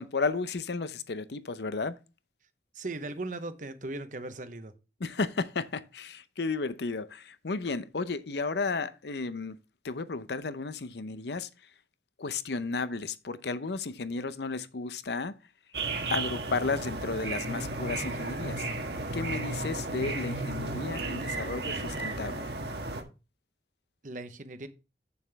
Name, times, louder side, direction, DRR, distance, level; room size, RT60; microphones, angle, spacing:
voice 1, 0.0-2.0 5.0-9.6 9.8-11.5 12.2-15.4 16.1-18.7 19.1-22.5, left 4 dB, 70° left, 0.7 m, -33 dB
voice 2, 2.7-4.7 24.0-24.7, right 2 dB, 45° right, 0.9 m, -38 dB
sound 1, 15.7-23.0, right 2 dB, 70° right, 1.5 m, -34 dB
8.3 x 7.1 x 3.4 m
head